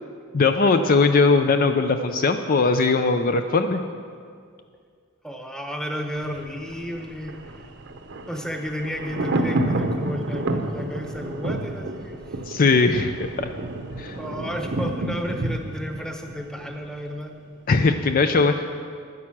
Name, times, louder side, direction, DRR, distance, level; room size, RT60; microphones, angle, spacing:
voice 1, 0.3-3.8 12.5-13.5 14.0-14.2 17.7-18.7, left 4 dB, 40° left, 7 dB, 0.4 m, -20 dB
voice 2, 5.2-7.7 8.3-12.4 14.2-17.3, equal, 5° left, 3 dB, 0.9 m, -32 dB
Thunder, 6.2-17.1 17.4-17.5, right 1 dB, 55° right, 0.8 m, -30 dB
12.0 x 9.7 x 6.0 m, 2.2 s
head